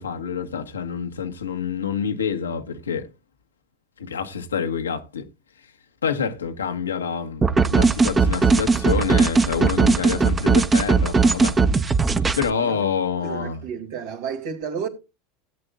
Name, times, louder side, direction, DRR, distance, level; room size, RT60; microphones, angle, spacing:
voice 1, 0.0-3.1 4.0-5.3 6.0-11.6 12.4-13.6, left 6 dB, 90° left, 1.2 m, -27 dB
sound 1, 7.4-12.5, right 4 dB, 20° right, 1.1 m, -18 dB
voice 2, 13.2-14.9, right 7 dB, 65° right, 2.8 m, -31 dB
17.0 x 8.9 x 2.4 m
hypercardioid pair, 85°, 0 cm